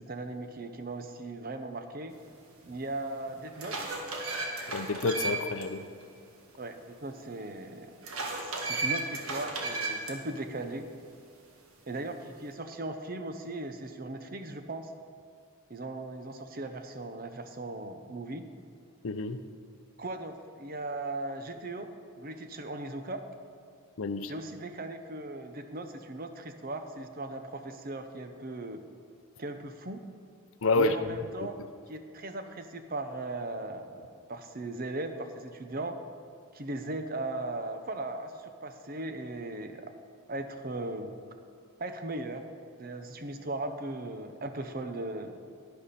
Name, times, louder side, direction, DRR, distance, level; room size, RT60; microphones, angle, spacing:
voice 1, 0.0-2.1 2.7-3.8 6.6-8.0 8.4-10.9 11.9-14.9 15.7-18.5 20.0-21.9 22.2-23.2 24.2-28.8 29.4-30.0 30.8-31.6 31.9-36.0 36.5-39.9 40.3-41.2 41.8-42.4 42.8-45.5, right 2 dB, 40° right, 7 dB, 0.7 m, -38 dB
sound 1, 2.6-2.7 3.3-5.6 6.0-6.1 8.0-10.1, right 3 dB, 80° right, 1.6 m, -34 dB
voice 2, 4.7-5.8 19.0-19.4 24.0-24.3 30.6-31.0, left 3 dB, 70° left, 10 dB, 0.6 m, -28 dB
11.0 x 10.5 x 4.2 m, 2.3 s
head